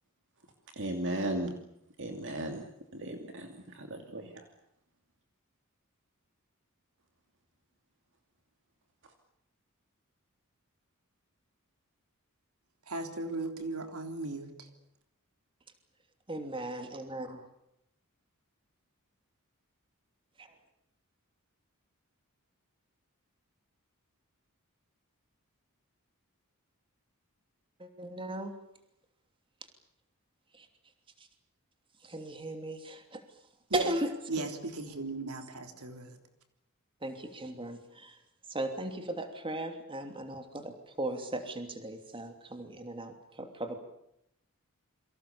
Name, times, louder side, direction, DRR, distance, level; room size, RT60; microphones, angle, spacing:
voice 1, 0.8-1.5 2.0-2.6 2.9-4.3, right 1 dB, 55° right, 5 dB, 2.7 m, -36 dB
voice 2, 12.9-14.7 33.7-33.9 34.3-36.2, right 2 dB, 75° right, 6 dB, 3.4 m, -36 dB
voice 3, 16.3-17.4 20.4-20.5 27.8-28.5 30.5-30.7 32.0-33.2 33.7-34.1 34.4-34.5 37.0-38.2 38.5-43.8, right 1 dB, 25° right, 6 dB, 2.9 m, -37 dB
28.5 x 24.5 x 7.0 m, 0.78 s
head